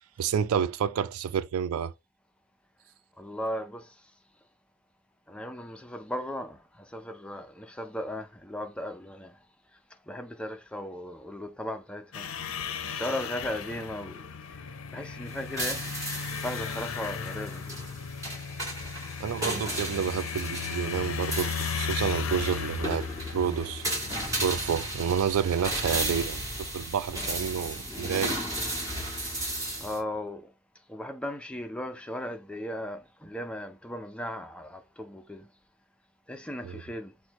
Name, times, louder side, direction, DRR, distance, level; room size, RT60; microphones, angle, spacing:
voice 1, 0.2-1.9 19.2-23.1 23.3-23.9 24.4-28.4 36.6-36.8, right 8 dB, 80° right, 0.3 m, -29 dB
voice 2, 3.2-3.9 5.3-9.4 10.1-12.3 12.9-14.2 14.9-15.9 16.4-17.7 29.8-30.5 30.9-35.5 36.3-37.1, left 1 dB, 5° left, 0.4 m, -36 dB
sound 1, 12.1-24.5, left 6 dB, 65° left, 0.5 m, -36 dB
sound 2, 15.3-30.0, right 1 dB, 15° right, 1.6 m, -35 dB
6.1 x 2.1 x 2.9 m
head